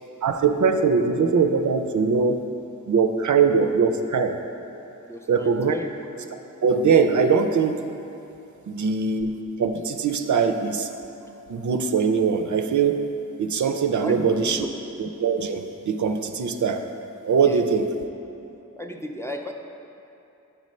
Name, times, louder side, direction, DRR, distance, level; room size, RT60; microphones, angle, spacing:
voice 1, 0.2-2.5 2.9-4.4 5.3-5.7 6.6-7.8 8.7-10.9 11.5-13.1 13.4-14.7 15.0-16.9 17.2-17.9, right 5 dB, 65° right, 6 dB, 0.5 m, -22 dB
voice 2, 5.1-5.9 13.9-14.7 17.4-17.6 18.8-19.5, left 1 dB, 10° left, 2 dB, 0.4 m, -35 dB
8.3 x 3.2 x 5.2 m, 2.8 s
cardioid pair, 60°, 33 cm